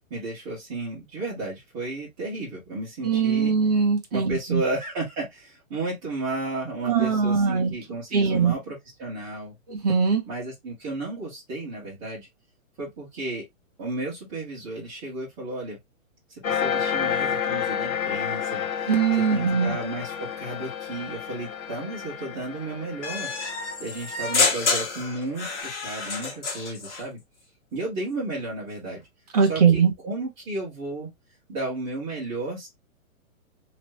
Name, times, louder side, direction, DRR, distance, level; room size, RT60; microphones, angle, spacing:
voice 1, 0.1-3.5 4.1-9.6 10.3-12.3 12.8-13.4 13.8-15.8 16.3-18.9 19.2-23.3 23.8-27.2 27.7-29.0 29.5-31.1 31.5-32.7, right 2 dB, 15° right, 1.4 m, -33 dB
voice 2, 3.0-4.6 6.8-7.7 8.1-8.5 9.7-10.2 18.9-19.8 29.3-29.9, right 6 dB, 30° right, 0.8 m, -21 dB
sound 1, 16.4-25.4, left 8 dB, 70° left, 0.8 m, -30 dB
sound 2, 23.0-27.0, left 4 dB, 55° left, 1.5 m, -28 dB
3.1 x 3.1 x 3.0 m
hypercardioid pair, 180°, 42 cm